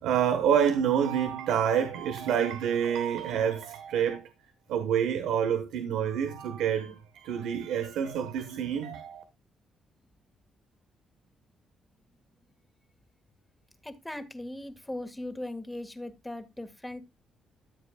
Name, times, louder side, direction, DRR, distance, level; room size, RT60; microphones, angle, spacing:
voice 1, 0.0-4.3 4.7-9.2, right 8 dB, 90° right, 1.3 m, -27 dB
voice 2, 13.8-17.0, left 1 dB, 10° left, 1.8 m, -39 dB
13.5 x 7.5 x 2.3 m
cardioid pair, 90°, 0 cm